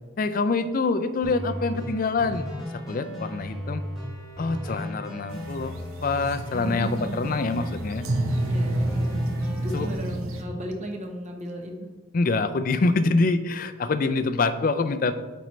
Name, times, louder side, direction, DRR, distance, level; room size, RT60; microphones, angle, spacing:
voice 1, 0.2-2.5 2.7-3.8 4.4-5.7 6.0-8.1 9.7-9.9 12.1-15.1, left 3 dB, 40° left, 11 dB, 0.4 m, -25 dB
sound 1, 1.2-9.9, equal, 5° right, 1.7 m, -36 dB
sound 2, 5.3-10.4, right 1 dB, 85° right, 0.8 m, -29 dB
voice 2, 6.5-7.1 8.4-9.2 9.6-11.9, equal, 35° right, 3 dB, 0.9 m, -35 dB
8.9 x 4.5 x 3.1 m, 1.3 s
head